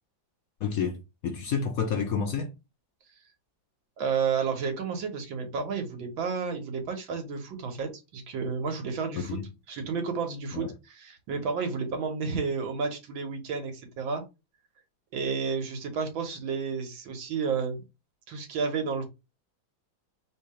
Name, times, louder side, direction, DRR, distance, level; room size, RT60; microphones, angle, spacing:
voice 1, 0.6-2.5 9.1-9.5 10.5-10.7, left 6 dB, 60° left, 1.0 m, -30 dB
voice 2, 4.0-9.4 9.7-14.2 15.1-17.8 18.3-19.1, right 5 dB, 90° right, 2.0 m, -31 dB
3.8 x 2.9 x 4.8 m
omnidirectional pair, 2.1 m